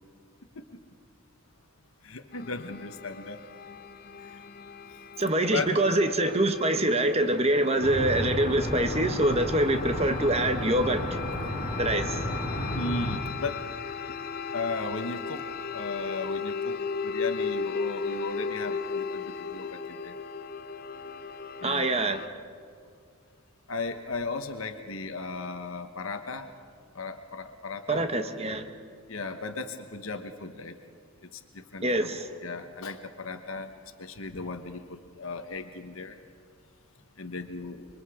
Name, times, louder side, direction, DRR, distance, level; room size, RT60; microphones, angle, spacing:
voice 1, 2.0-3.4 4.2-4.4 5.5-5.8 12.7-13.6 14.5-15.4 15.7-16.7 17.0-20.2 21.6-22.0 23.7-26.5 26.9-28.1 29.1-30.8 31.2-33.7 34.0-36.2 37.2-37.9, left 3 dB, 65° left, 7 dB, 1.1 m, -36 dB
sound 1, 2.3-22.3, left 5 dB, 45° left, 0.6 m, -37 dB
voice 2, 5.2-11.2 11.8-12.2 21.6-22.2 27.9-28.7 31.8-32.3, right 1 dB, 30° right, 7 dB, 1.1 m, -25 dB
sound 2, 7.8-13.2, equal, 30° left, 3.1 m, -32 dB
26.5 x 23.5 x 5.0 m, 2.2 s
head